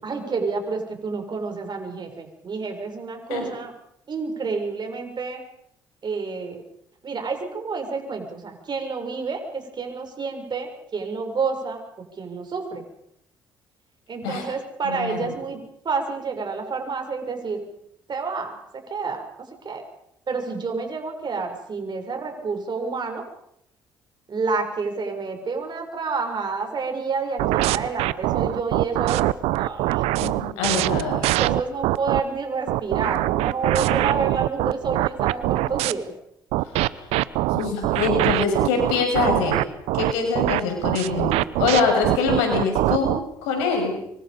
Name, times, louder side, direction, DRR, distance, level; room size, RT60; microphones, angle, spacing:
voice 1, 0.0-3.7 4.1-5.4 6.0-6.6 7.0-11.8 12.2-12.8 14.1-17.7 18.1-18.6 18.9-19.2 19.6-19.8 20.3-23.2 24.3-29.2 29.6-30.1 31.1-36.1, right 4 dB, 45° right, 4 dB, 6.9 m, -29 dB
voice 2, 14.8-15.3 30.2-31.2 37.5-39.6 39.9-44.0, left 4 dB, 80° left, 4 dB, 6.6 m, -24 dB
sound 1, 27.4-32.2 32.7-35.9 36.5-43.2, right 17 dB, 70° right, 0.8 m, -23 dB
26.5 x 24.5 x 5.4 m, 0.75 s
hypercardioid pair, 55°, 11 cm